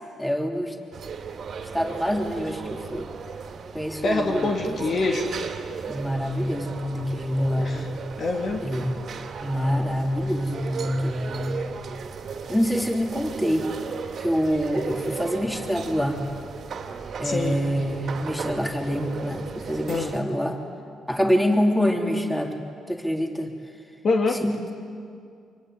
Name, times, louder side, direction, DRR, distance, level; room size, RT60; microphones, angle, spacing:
voice 1, 0.2-0.8 1.7-3.1 3.7-4.8 5.8-7.9 8.6-8.9 9.4-11.7 12.5-13.7 14.2-16.2 17.2-20.6 21.1-22.6 22.9-23.5 24.4-24.6, equal, 5° left, 2 dB, 3.6 m, -26 dB
sound 1, 0.9-20.2, right 6 dB, 55° right, 2.7 m, -36 dB
voice 2, 4.0-5.3 7.6-7.9 8.2-8.6 17.2-17.6 19.9-20.1 24.0-24.4, left 3 dB, 50° left, 2 dB, 2.7 m, -25 dB
25.5 x 23.5 x 9.8 m, 2.3 s
cardioid pair, 90°, 0 cm